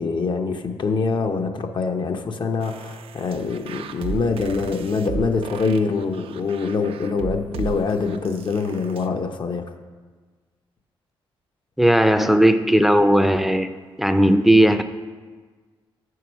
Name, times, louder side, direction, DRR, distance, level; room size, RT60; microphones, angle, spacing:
voice 1, 0.0-9.7, left 4 dB, 50° left, 5 dB, 0.7 m, -24 dB
sound 1, 2.6-9.1, right 6 dB, 70° right, 0.5 m, -35 dB
voice 2, 11.8-13.7 14.0-14.8, right 1 dB, ahead, 10 dB, 0.5 m, -16 dB
6.8 x 4.7 x 6.1 m, 1.4 s
supercardioid pair, 60°, 10 cm